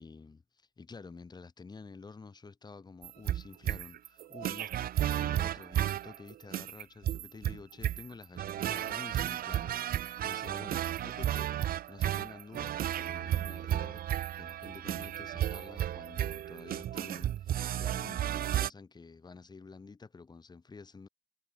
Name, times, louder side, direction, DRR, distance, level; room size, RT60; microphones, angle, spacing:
voice 1, 0.0-21.1, left 4 dB, 25° left, 7.2 m, -50 dB
sound 1, 3.0-18.7, right 11 dB, 60° right, 2.1 m, -33 dB
cardioid pair, 110°, 17 cm